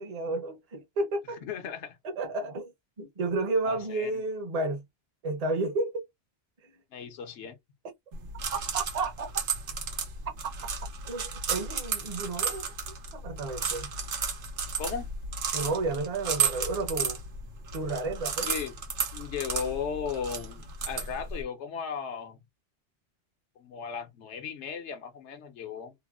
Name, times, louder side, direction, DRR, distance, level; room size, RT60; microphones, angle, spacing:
voice 1, 0.0-1.4 2.0-2.7 3.0-4.8 5.2-6.1 8.5-9.3 10.4-10.5 11.0-12.6 13.1-13.9 15.5-17.2 17.7-18.5, right 3 dB, 40° right, 0.7 m, -31 dB
voice 2, 1.4-2.0 3.7-4.1 6.9-7.5 14.8-15.1 18.4-18.7 19.1-22.4 23.6-25.9, left 7 dB, 80° left, 1.0 m, -36 dB
sound 1, 8.1-21.4, right 5 dB, 85° right, 1.1 m, -33 dB
3.0 x 2.0 x 2.2 m
omnidirectional pair, 1.2 m